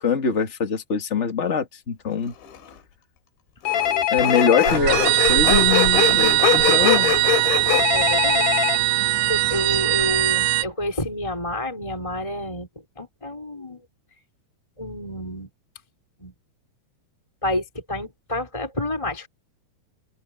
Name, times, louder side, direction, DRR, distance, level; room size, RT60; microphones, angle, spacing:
voice 1, 0.0-2.3 4.1-7.2, left 6 dB, 30° left, 1.2 m, -23 dB
Sawing, 2.5-2.6 3.7-7.8, left 10 dB, 90° left, 5.0 m, -23 dB
Telephone, 3.6-4.8 7.7-8.8, left 10 dB, 60° left, 1.9 m, -22 dB
sound 1, 4.7-10.6, right 17 dB, 85° right, 3.3 m, -20 dB
voice 2, 7.9-8.6 9.3-12.7 13.0-13.8 14.8-15.5 16.2-16.3 17.4-19.3, left 1 dB, 5° left, 4.5 m, -29 dB
open air
omnidirectional pair, 5.0 m